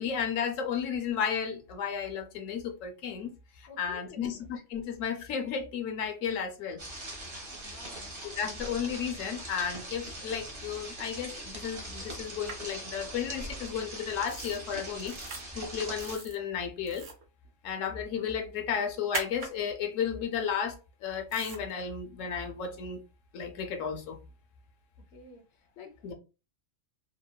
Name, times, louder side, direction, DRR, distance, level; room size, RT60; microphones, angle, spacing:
voice 1, 0.0-3.3 3.6-6.8 8.2-15.1 15.5-17.1 17.6-23.0 23.3-24.2 26.0-26.1, left 7 dB, 90° left, 1.0 m, -33 dB
voice 2, 3.7-4.4 7.5-8.3 25.1-26.1, left 5 dB, 65° left, 0.8 m, -51 dB
sound 1, 6.8-16.2, right 1 dB, 35° right, 0.5 m, -41 dB
sound 2, 12.5-12.6 14.3-14.6 15.0-15.4 16.0-16.4 16.8-17.2 19.1-19.5 21.3-21.6, right 4 dB, 75° right, 1.0 m, -38 dB
3.0 x 2.1 x 2.2 m
omnidirectional pair, 1.3 m